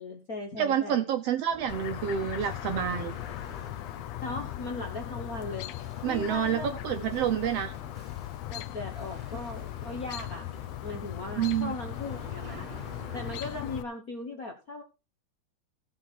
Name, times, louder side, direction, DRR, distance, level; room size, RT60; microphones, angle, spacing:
voice 1, 0.0-1.0 4.2-5.7 6.0-6.8 7.4-7.5 8.5-10.4 10.8-14.8, left 2 dB, 50° left, 1.1 m, -38 dB
voice 2, 0.6-3.1 6.0-7.7 11.4-11.7, right 9 dB, 70° right, 1.6 m, -28 dB
sound 1, 1.5-13.4, right 2 dB, 15° right, 2.9 m, -50 dB
Chirp tweet, 1.7-13.8, left 14 dB, 75° left, 1.7 m, -38 dB
16.5 x 5.7 x 4.3 m
omnidirectional pair, 3.5 m